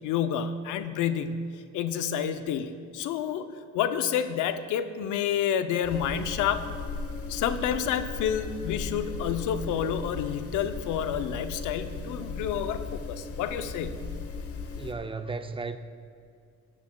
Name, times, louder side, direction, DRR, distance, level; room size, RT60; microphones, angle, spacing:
voice 1, 0.0-1.4 1.7-3.5 3.7-6.6 7.3-14.0, left 8 dB, 90° left, 0.6 m, -29 dB
sound 1, 5.8-14.9, left 4 dB, 50° left, 0.9 m, -37 dB
voice 2, 14.8-15.8, right 4 dB, 20° right, 0.4 m, -34 dB
13.0 x 10.5 x 2.2 m
cardioid pair, 90°, 30 cm